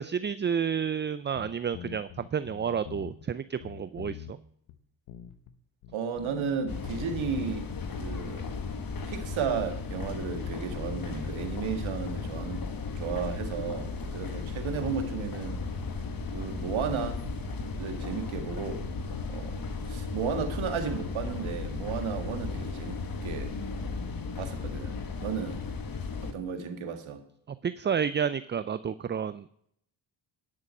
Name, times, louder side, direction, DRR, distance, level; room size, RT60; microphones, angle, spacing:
voice 1, 0.0-4.4 27.6-29.4, right 7 dB, 25° right, 0.4 m, -30 dB
sound 1, 1.3-3.3 3.6-4.4 4.7-4.8 5.1-5.5 5.8-7.8, left 10 dB, 85° left, 1.0 m, -45 dB
voice 2, 5.9-7.7 8.0-8.5 9.1-12.7 13.0-15.6 16.3-17.2 17.8-18.9 19.3-19.6 19.9-23.5 24.4-25.6 26.2-27.2, right 6 dB, 70° right, 1.8 m, -34 dB
sound 2, 6.7-26.3, left 4 dB, 45° left, 1.4 m, -35 dB
Boat Water vehicle, 13.0-24.0, right 7 dB, 90° right, 2.1 m, -46 dB
11.0 x 6.6 x 5.4 m
supercardioid pair, 55°, 49 cm